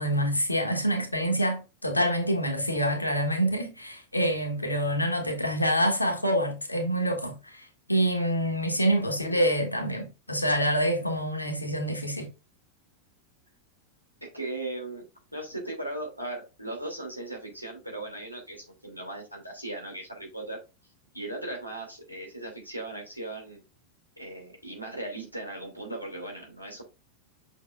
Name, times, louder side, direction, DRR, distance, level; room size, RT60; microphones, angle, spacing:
voice 1, 0.0-12.3, equal, 85° left, 1.4 m, -26 dB
voice 2, 14.2-15.0 15.3-20.6 21.1-23.6 24.2-26.8, right 2 dB, 90° right, 2.7 m, -38 dB
6.6 x 6.3 x 2.5 m
figure-of-eight pair, 90°, 0 cm